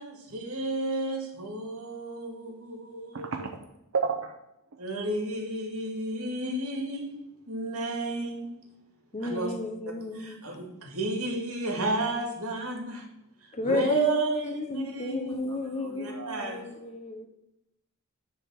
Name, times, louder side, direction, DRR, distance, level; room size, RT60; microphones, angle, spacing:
voice 1, 0.0-3.3 4.8-7.1 7.5-8.5 9.2-9.5 10.1-13.0 13.4-16.6, right 2 dB, 85° right, 1 dB, 2.3 m, -32 dB
voice 2, 3.1-3.7 3.9-4.3 4.7-4.8 15.5-16.5, right 5 dB, 65° right, 2 dB, 0.7 m, -33 dB
voice 3, 9.1-10.4 13.5-17.3, left 2 dB, 30° left, 7 dB, 0.8 m, -32 dB
10.0 x 3.7 x 5.8 m, 0.86 s
head